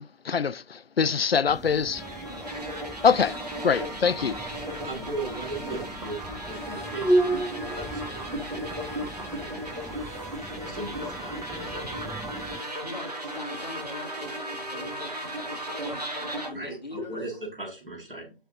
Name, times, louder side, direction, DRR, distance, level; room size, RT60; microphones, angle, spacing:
voice 1, 0.0-2.0 3.0-3.3 3.6-4.4, left 6 dB, 80° left, 0.5 m, -24 dB
sound 1, 1.5-12.6, right 1 dB, ahead, 0.3 m, -34 dB
sound 2, 1.9-16.1, equal, 25° right, 1.1 m, -45 dB
sound 3, 2.0-16.5, right 1 dB, 40° right, 1.3 m, -36 dB
voice 2, 2.3-2.7 3.3-3.4 4.3-5.1 11.0-11.2 12.8-17.3, left 3 dB, 45° left, 1.7 m, -43 dB
voice 3, 4.8-8.2 8.5-10.0 10.5-12.0 16.5-18.3, right 2 dB, 65° right, 3.7 m, -38 dB
6.6 x 5.6 x 3.6 m
figure-of-eight pair, 180°, 30 cm